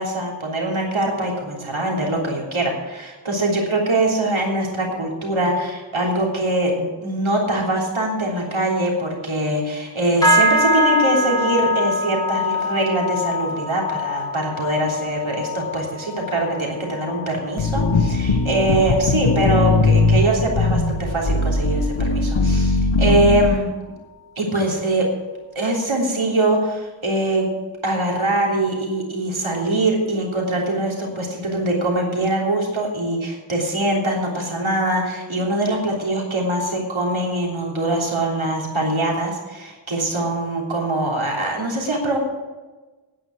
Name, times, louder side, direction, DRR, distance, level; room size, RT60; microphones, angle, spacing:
voice 1, 0.0-23.7 24.4-25.1 25.6-27.5 27.8-42.2, right 1 dB, 80° right, -1 dB, 3.4 m, -23 dB
sound 1, 10.2-19.8 20.1-20.5 20.9-21.2 21.8-21.9, left 1 dB, 10° left, 3.2 m, -24 dB
sound 2, 17.6-23.6, left 3 dB, 75° left, 1.3 m, -19 dB
10.0 x 9.1 x 8.2 m, 1.2 s
wide cardioid pair, 55°, 47 cm